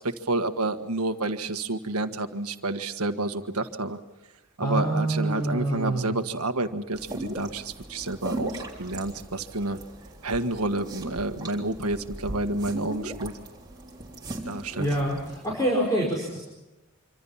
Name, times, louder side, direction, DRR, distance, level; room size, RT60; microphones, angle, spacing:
voice 1, 0.0-4.0 4.6-9.8 10.2-13.3 14.5-14.9, right 2 dB, 90° right, 7 dB, 1.6 m, -29 dB
voice 2, 4.6-6.1 14.8-15.2 15.4-16.4, right 1 dB, 15° left, -1 dB, 5.1 m, -26 dB
sound 1, 6.9-15.5, right 1 dB, 20° right, 3.4 m, -38 dB
26.0 x 26.0 x 5.8 m, 1.0 s
head